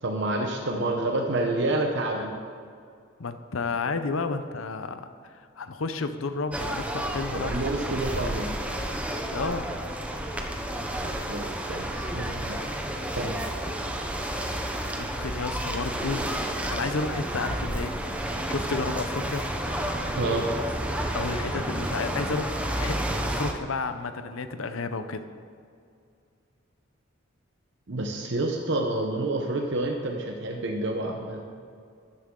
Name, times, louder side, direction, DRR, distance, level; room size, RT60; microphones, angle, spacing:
voice 1, 0.0-2.3 7.3-8.5 11.3-12.7 13.1-13.3 20.1-20.5 27.9-31.4, right 2 dB, 60° right, 1 dB, 0.9 m, -28 dB
voice 2, 3.2-5.1 5.6-7.6 9.3-9.7 15.0-16.3 16.6-18.0 18.5-19.4 21.1-25.2, left 4 dB, 85° left, 10 dB, 0.7 m, -31 dB
sound 1, 6.5-23.5, right 1 dB, 5° right, 0.7 m, -31 dB
12.5 x 10.0 x 3.8 m, 2.4 s
head